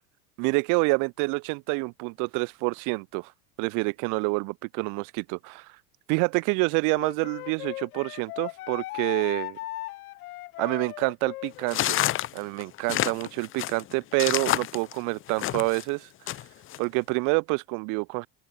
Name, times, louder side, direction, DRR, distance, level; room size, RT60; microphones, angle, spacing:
voice 1, 0.4-3.3 3.6-5.7 6.1-9.6 10.6-12.0 12.3-16.1 16.8-18.3, right 31 dB, 40° right, 0.6 m, -27 dB
Wind instrument woodwind instrument, 6.9-12.2, left 18 dB, 65° left, 2.1 m, -38 dB
sound 1, 11.7-15.8 16.3-16.8, left 14 dB, 25° left, 0.7 m, -28 dB
open air
figure-of-eight pair, 80°, 48 cm